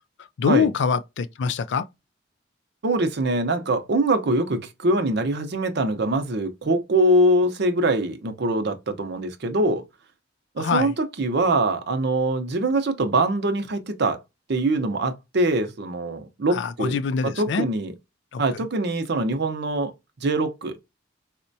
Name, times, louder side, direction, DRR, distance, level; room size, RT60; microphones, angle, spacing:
voice 1, 0.4-1.9 10.6-10.9 16.5-17.7 18.3-18.7, left 5 dB, 65° left, 0.4 m, -24 dB
voice 2, 2.8-9.8 10.6-14.2 14.5-17.0 17.4-17.9 18.4-19.9 20.2-20.7, right 2 dB, 60° right, 0.6 m, -23 dB
4.2 x 2.1 x 2.5 m
head